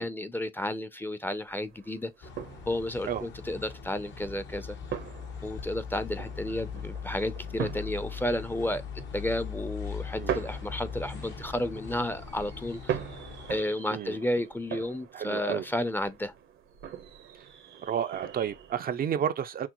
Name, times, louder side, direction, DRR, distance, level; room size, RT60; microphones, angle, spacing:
voice 1, 0.0-2.3 2.7-4.8 5.4-8.8 9.1-13.0 13.5-16.3, left 1 dB, 10° left, 0.5 m, -32 dB
sound 1, 1.3-18.7, right 9 dB, 85° right, 1.0 m, -41 dB
sound 2, 2.2-13.6, left 6 dB, 70° left, 1.1 m, -40 dB
voice 2, 15.1-15.6 17.8-19.7, right 9 dB, 50° right, 0.4 m, -31 dB
6.0 x 2.0 x 2.9 m
cardioid pair, 90°, 20 cm